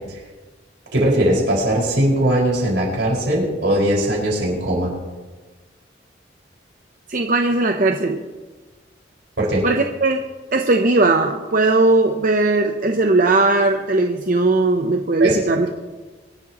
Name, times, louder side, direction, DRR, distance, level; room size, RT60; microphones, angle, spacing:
voice 1, 0.9-4.9 9.4-9.6 15.2-15.4, right 1 dB, 75° right, -3 dB, 5.2 m, -19 dB
voice 2, 7.1-8.2 9.6-10.2 10.5-15.7, right 2 dB, 45° right, 4 dB, 0.7 m, -18 dB
24.0 x 12.0 x 3.0 m, 1.3 s
head